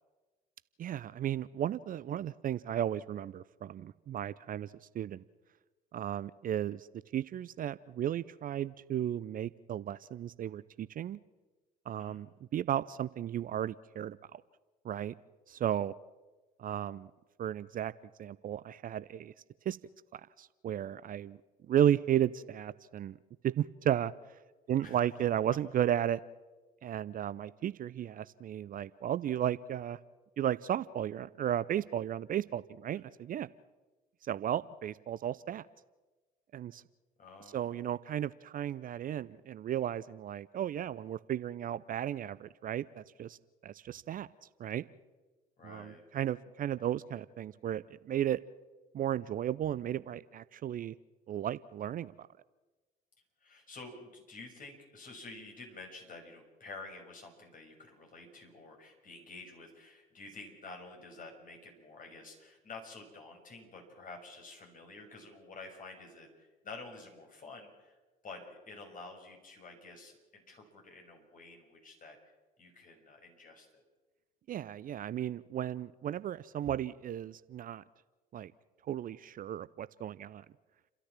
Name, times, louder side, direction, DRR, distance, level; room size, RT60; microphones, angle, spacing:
voice 1, 0.8-5.2 5.9-6.9 7.1-11.2 11.9-14.4 14.8-15.1 15.5-16.0 16.6-17.1 17.4-17.9 18.2-19.3 19.7-19.8 20.1-21.4 21.7-23.2 23.4-24.1 24.7-26.2 26.8-30.0 30.4-33.5 34.2-35.7 36.5-36.8 37.5-43.4 43.6-44.3 44.6-44.8 45.6-48.4 48.9-50.9 51.3-52.3 74.5-77.8 78.3-78.5 78.9-80.4, right 10 dB, 40° right, 17 dB, 0.6 m, -34 dB
voice 2, 37.2-37.9 45.6-46.0 53.4-68.0 68.2-72.2 72.6-73.8, left 3 dB, 40° left, 2 dB, 6.3 m, -50 dB
30.0 x 13.0 x 7.4 m, 1.2 s
hypercardioid pair, 55°, 21 cm